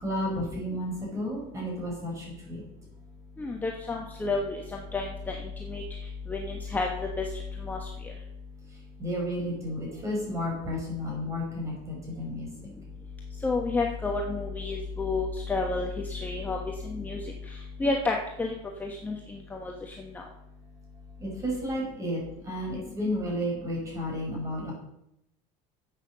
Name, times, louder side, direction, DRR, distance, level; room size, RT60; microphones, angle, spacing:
voice 1, 0.0-2.6 9.0-12.5 21.2-22.2 22.5-24.7, equal, 20° right, -2 dB, 5.5 m, -32 dB
voice 2, 3.4-5.4 5.7-5.8 6.3-6.9 7.2-7.3 7.7-7.8 13.4-16.6 16.9-17.2 17.8-18.5 18.8-19.1 19.5-19.7, left 3 dB, 10° left, 1 dB, 1.1 m, -30 dB
11.0 x 8.2 x 6.9 m, 0.80 s
cardioid pair, 165°, 16 cm